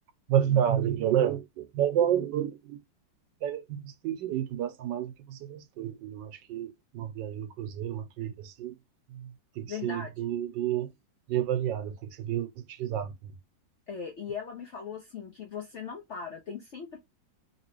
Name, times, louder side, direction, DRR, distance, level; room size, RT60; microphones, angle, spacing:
voice 1, 0.3-2.8 3.4-8.8 9.1-9.3 9.6-10.9 11.3-13.1, right 10 dB, 80° right, 1.3 m, -30 dB
voice 2, 9.7-10.1 13.9-17.0, left 6 dB, 65° left, 0.7 m, -39 dB
3.0 x 2.9 x 3.1 m
omnidirectional pair, 2.0 m